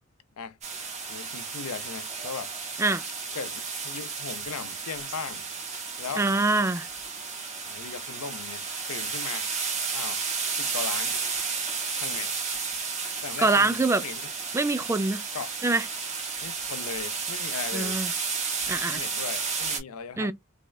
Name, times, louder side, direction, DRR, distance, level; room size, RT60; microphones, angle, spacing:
sound 1, 0.6-19.8, right 5 dB, 30° right, 1.5 m, -32 dB
voice 1, 1.1-2.5 3.3-5.5 6.0-6.3 7.7-8.6 8.9-9.5 9.9-10.2 10.6-11.2 12.0-12.3 13.2-14.3 15.3-15.6 16.4-18.0 18.7-20.3, left 6 dB, 90° left, 0.5 m, -38 dB
voice 2, 6.2-6.9 13.4-14.0 14.5-15.2 15.6-15.9 17.7-18.1 18.7-19.0 20.2-20.3, right 3 dB, 10° right, 0.3 m, -24 dB
3.5 x 3.1 x 2.3 m
head